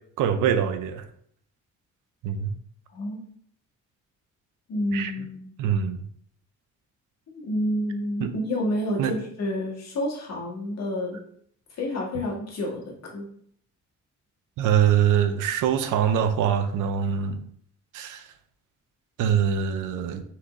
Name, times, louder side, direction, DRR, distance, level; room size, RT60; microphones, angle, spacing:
voice 1, 0.2-1.0 2.2-2.5 4.9-5.1 5.6-6.0 8.2-8.3 9.0-9.1 14.6-17.4 17.9-18.2 19.2-20.2, right 8 dB, 85° right, 9 dB, 0.6 m, -23 dB
voice 2, 4.7-5.5 7.3-11.2 11.7-13.3, left 1 dB, 60° left, -2 dB, 1.8 m, -29 dB
4.8 x 3.5 x 3.1 m, 0.63 s
cardioid pair, 90°, 30 cm